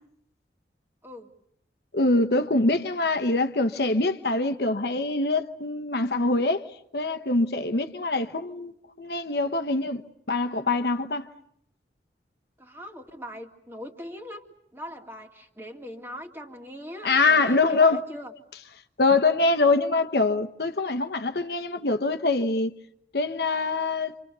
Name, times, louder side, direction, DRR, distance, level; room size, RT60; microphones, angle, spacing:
voice 1, 1.9-6.6 6.9-11.3 17.0-18.0 19.0-22.7 23.1-24.1, left 3 dB, 65° left, 1.1 m, -24 dB
voice 2, 12.6-14.4 14.7-18.3, equal, 15° right, 2.2 m, -40 dB
27.5 x 26.5 x 6.9 m
head